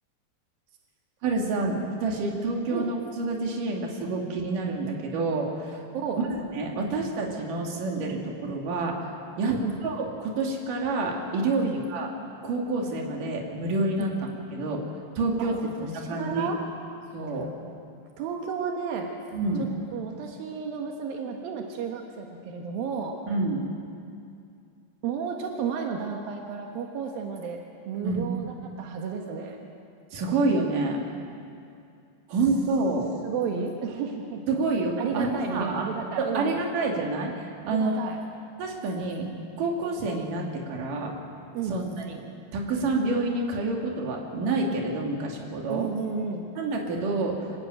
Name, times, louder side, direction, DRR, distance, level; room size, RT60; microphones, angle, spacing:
voice 1, 1.2-5.8 6.5-9.0 9.4-12.1 12.4-14.1 14.5-14.8 15.2-16.5 17.1-17.5 19.3-19.7 23.3-23.6 28.0-28.2 30.1-31.0 32.3-33.1 34.5-35.9 36.2-37.3 37.7-37.9 38.6-39.3 39.6-41.1 41.7-42.2 42.5-45.9 46.6-47.4, right 3 dB, 70° right, 0 dB, 3.8 m, -28 dB
voice 2, 9.5-9.8 11.6-11.8 14.0-14.1 15.4-16.6 18.2-19.1 19.9-23.2 25.0-29.6 33.2-34.6 35.0-36.7 37.6-38.2 41.5-41.8 45.7-46.5, right 6 dB, 90° right, 2 dB, 3.2 m, -32 dB
25.5 x 14.0 x 9.1 m, 2.5 s
omnidirectional pair, 4.0 m